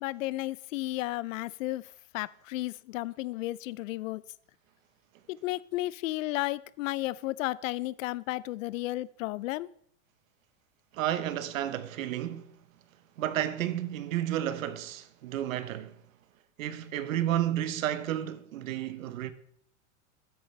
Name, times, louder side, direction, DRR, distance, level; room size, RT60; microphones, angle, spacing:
voice 1, 0.0-1.8 2.1-4.2 5.3-9.7, left 17 dB, 80° left, 0.5 m, -33 dB
voice 2, 10.9-12.5 13.2-15.9 16.6-19.3, right 12 dB, 85° right, 1.0 m, -31 dB
12.5 x 9.0 x 3.3 m
supercardioid pair, 140°, 39 cm